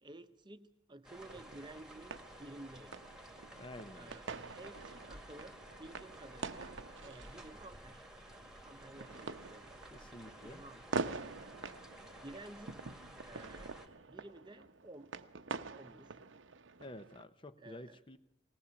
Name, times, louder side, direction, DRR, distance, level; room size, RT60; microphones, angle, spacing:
voice 1, 0.0-3.0 3.9-6.7 7.0-8.0 8.6-10.1 10.4-11.1 12.2-12.8 13.2-15.1 15.7-16.2 17.6-18.0, right 2 dB, 25° right, 9 dB, 0.9 m, -53 dB
sound 1, 1.0-13.9, right 1 dB, 5° right, 1.8 m, -54 dB
sound 2, 1.2-17.2, right 4 dB, 85° right, 0.9 m, -46 dB
voice 2, 3.6-4.2 9.9-10.6 16.8-18.2, left 1 dB, 25° left, 11 dB, 0.7 m, -50 dB
20.0 x 18.5 x 7.1 m, 0.91 s
head